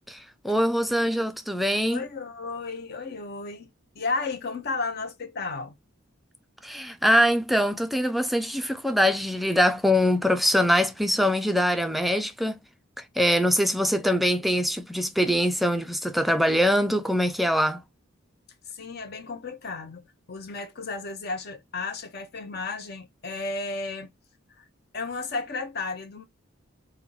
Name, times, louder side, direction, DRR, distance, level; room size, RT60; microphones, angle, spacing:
voice 1, 0.1-2.0 6.6-12.5 13.2-17.8, equal, ahead, 0.3 m, -23 dB
voice 2, 1.9-3.7 3.9-5.7 18.7-20.0 20.3-24.1 24.6-24.7 24.9-26.2, left 3 dB, 50° left, 0.6 m, -33 dB
4.3 x 2.1 x 3.8 m
head